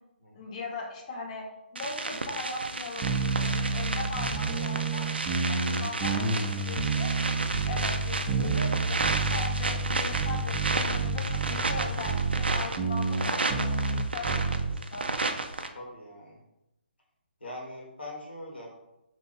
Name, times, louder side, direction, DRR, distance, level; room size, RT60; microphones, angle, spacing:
voice 1, 0.3-5.1 5.5-7.1 7.7-14.6 14.9-15.1, left 3 dB, 35° left, 0 dB, 0.8 m, -39 dB
sound 1, 1.8-15.7, right 3 dB, 70° right, 0.5 m, -32 dB
sound 2, 3.0-14.8, right 3 dB, 20° right, 0.6 m, -29 dB
voice 2, 15.7-16.4 17.4-18.7, left 1 dB, 75° left, -2 dB, 1.5 m, -42 dB
3.5 x 2.9 x 3.9 m, 0.89 s
figure-of-eight pair, 140°, 6 cm